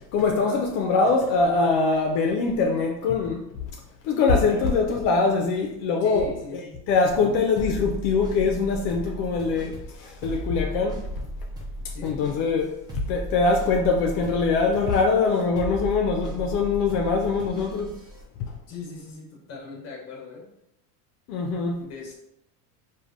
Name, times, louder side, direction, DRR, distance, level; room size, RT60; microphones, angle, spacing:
voice 1, 0.1-3.5 4.0-6.6 6.9-11.0 12.0-17.9 18.4-18.5 21.3-21.8, left 4 dB, 75° left, 0.5 m, -23 dB
voice 2, 6.0-6.8 11.9-12.2 18.7-20.5 21.8-22.2, left 4 dB, 35° left, 0.9 m, -39 dB
sound 1, 7.6-18.2, right 1 dB, 10° right, 0.4 m, -36 dB
3.2 x 2.2 x 2.5 m
supercardioid pair, 135°, 47 cm